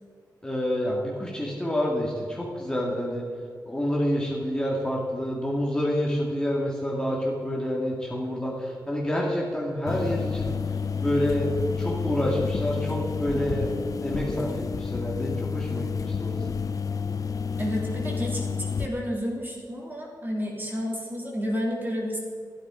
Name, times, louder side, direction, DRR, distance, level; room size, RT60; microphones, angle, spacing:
voice 1, 0.4-3.2 3.7-10.6 11.0-11.5 11.8-13.7 14.0-16.4, equal, 10° left, -4 dB, 2.2 m, -28 dB
sound 1, 9.9-18.9, left 5 dB, 50° left, 0.5 m, -30 dB
voice 2, 17.6-22.2, equal, 25° right, -2 dB, 3.2 m, -31 dB
13.0 x 11.5 x 5.0 m, 2.1 s
wide cardioid pair, 130°, 8 cm